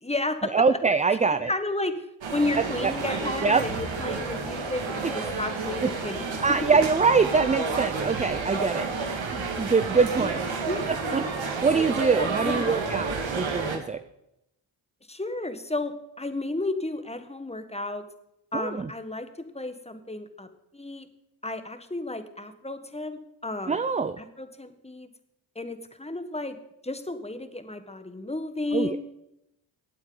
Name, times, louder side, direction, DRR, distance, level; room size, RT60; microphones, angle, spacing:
voice 1, 0.0-0.5 1.5-2.1 2.3-6.3 10.7-11.2 12.2-12.8 15.1-18.1 18.5-21.1 21.4-23.8 24.2-25.1 25.5-26.6 26.8-29.0, left 2 dB, 10° left, 9 dB, 1.4 m, -32 dB
voice 2, 0.5-1.5 2.5-2.9 3.4-3.6 5.0-5.2 5.8-5.9 6.4-8.9 9.1-9.2 9.6-10.4 11.1-14.0 18.5-18.9 23.7-24.2 28.7-29.0, right 5 dB, 15° right, 12 dB, 0.5 m, -24 dB
sound 1, 2.2-13.8, right 4 dB, 65° right, 2.1 m, -30 dB
15.5 x 8.9 x 3.9 m, 0.84 s
supercardioid pair, 50°, 50 cm